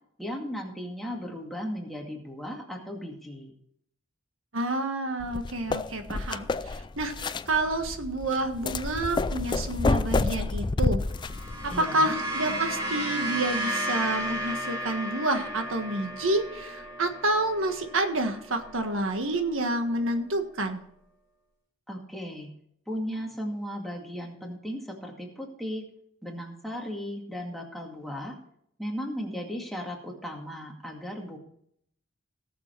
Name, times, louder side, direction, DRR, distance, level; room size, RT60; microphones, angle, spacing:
voice 1, 0.2-3.5 11.7-12.1 21.9-22.5 22.9-25.8 26.2-28.4 28.8-31.4, equal, ahead, -1 dB, 2.1 m, -36 dB
voice 2, 4.5-11.0 11.6-20.8, right 2 dB, 85° right, 6 dB, 1.6 m, -29 dB
sound 1, 5.2-11.8, left 3 dB, 25° left, 0.4 m, -29 dB
sound 2, 11.1-19.6, equal, 20° right, 3.9 m, -34 dB
17.5 x 6.9 x 4.6 m, 0.69 s
head